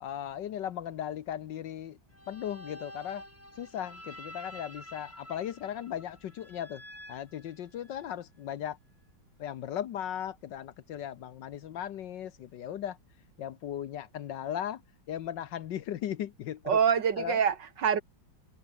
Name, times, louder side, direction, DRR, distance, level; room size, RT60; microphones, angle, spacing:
voice 1, 0.0-2.0 2.3-3.2 3.6-6.8 7.1-8.8 9.4-13.0 13.4-14.8 15.1-16.8 17.2-17.4, left 10 dB, 65° left, 1.5 m, -37 dB
sound 1, 2.1-8.1, equal, 5° left, 4.4 m, -49 dB
voice 2, 16.7-18.0, right 7 dB, 60° right, 2.1 m, -25 dB
omnidirectional pair, 2.2 m